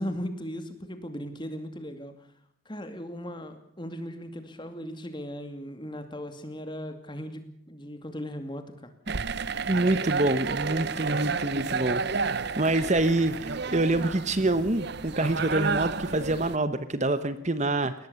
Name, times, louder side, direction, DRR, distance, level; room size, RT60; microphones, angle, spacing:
voice 1, 0.0-2.1 2.7-8.9, equal, 20° left, 8 dB, 2.5 m, -37 dB
sound 1, 9.1-16.6, right 5 dB, 50° right, 0.8 m, -31 dB
voice 2, 9.7-17.9, right 2 dB, 35° right, 12 dB, 1.1 m, -26 dB
21.5 x 18.5 x 7.1 m, 0.66 s
head